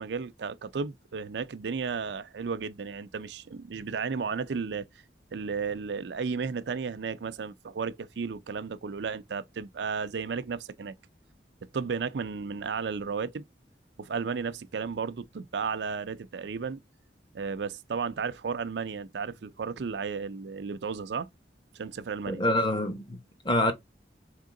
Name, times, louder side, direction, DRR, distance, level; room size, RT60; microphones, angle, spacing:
voice 1, 0.0-4.8 5.3-10.9 11.7-13.4 14.0-16.8 17.3-21.3 21.7-22.4, right 5 dB, 80° right, 0.5 m, -33 dB
voice 2, 22.3-23.7, left 1 dB, 25° left, 0.9 m, -27 dB
3.7 x 3.6 x 3.7 m
head